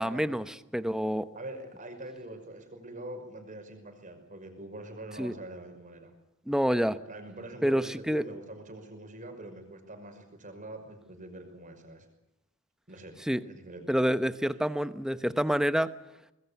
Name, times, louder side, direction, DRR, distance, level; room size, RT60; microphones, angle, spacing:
voice 1, 0.0-1.3 5.2-5.3 6.5-7.0 7.6-8.2 13.3-13.4 13.9-15.9, equal, 5° right, 12 dB, 0.9 m, -27 dB
voice 2, 1.3-6.1 7.1-12.1 12.9-13.2 13.4-14.0, right 1 dB, 35° right, 5 dB, 5.6 m, -44 dB
25.0 x 20.5 x 8.4 m, 0.90 s
head